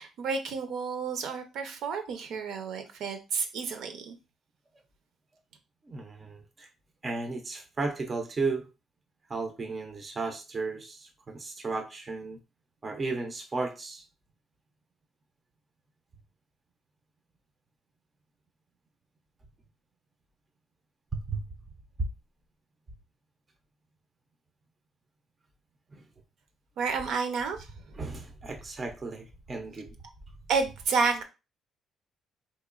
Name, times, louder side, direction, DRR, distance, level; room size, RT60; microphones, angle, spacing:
voice 1, 0.0-4.1 26.8-27.7 30.5-31.2, right 5 dB, 65° right, 7 dB, 0.6 m, -30 dB
voice 2, 5.9-6.7 7.0-8.7 9.3-12.4 12.8-14.0 21.1-21.4 25.9-26.0 27.9-30.0, right 3 dB, 20° right, 4 dB, 0.5 m, -34 dB
4.0 x 2.9 x 2.4 m, 0.29 s
cardioid pair, 170°, 0 cm